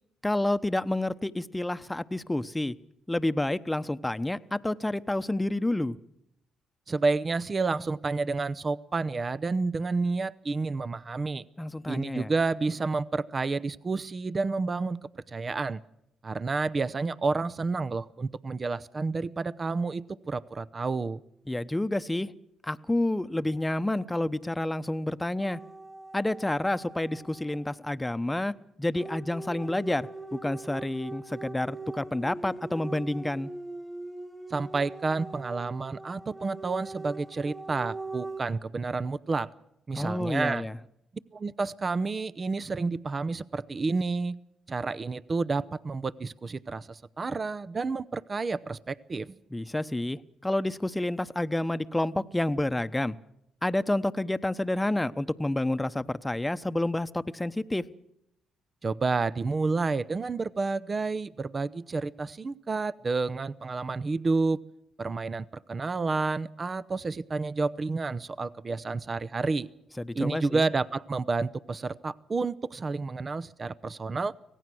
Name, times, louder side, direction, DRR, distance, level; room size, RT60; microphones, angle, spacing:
voice 1, 0.2-2.7 3.1-6.0 11.6-12.3 21.5-22.3 22.6-25.6 26.1-33.5 39.9-40.8 49.5-53.2 53.6-57.8 70.0-70.7, left 1 dB, 15° left, 12 dB, 1.0 m, -29 dB
voice 2, 6.9-11.4 11.9-15.0 15.3-15.8 16.2-21.2 34.5-39.5 39.9-40.7 41.3-44.4 44.7-49.3 58.8-64.6 65.0-69.7 70.1-74.3, right 3 dB, 40° right, 17 dB, 0.7 m, -30 dB
sound 1, 25.4-27.8 28.9-38.4, right 3 dB, 10° right, 1.8 m, -42 dB
25.0 x 17.5 x 6.2 m, 0.78 s
supercardioid pair, 60°, 0 cm